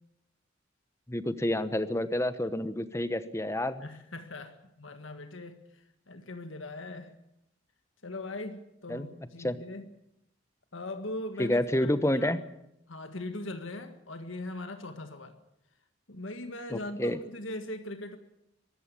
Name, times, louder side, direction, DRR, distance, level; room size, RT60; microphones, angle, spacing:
voice 1, 1.1-3.9 8.9-9.1 9.4-9.6 11.4-12.4 16.7-17.2, left 1 dB, 15° left, 12 dB, 1.0 m, -29 dB
voice 2, 3.8-7.1 8.0-9.9 10.7-12.4 12.9-15.4 16.1-18.2, left 2 dB, 85° left, 7 dB, 1.7 m, -40 dB
23.5 x 13.5 x 8.5 m, 0.82 s
head